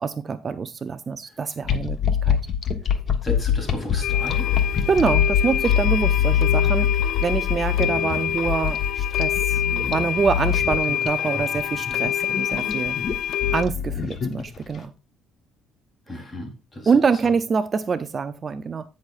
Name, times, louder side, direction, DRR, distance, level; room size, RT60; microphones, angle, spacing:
voice 1, 0.0-2.0 2.3-2.4 4.9-6.9 7.2-9.3 9.9-12.9 13.5-14.9 16.9-18.8, right 5 dB, 35° right, 12 dB, 0.5 m, -25 dB
sound 1, 1.6-14.8, left 8 dB, 45° left, 1.2 m, -24 dB
voice 2, 3.2-4.5 16.1-16.9, left 1 dB, 25° left, 3 dB, 3.5 m, -33 dB
sound 2, 4.0-13.6, left 11 dB, 70° left, 0.6 m, -27 dB
15.5 x 6.4 x 2.5 m, 0.28 s
cardioid pair, 110°, 0 cm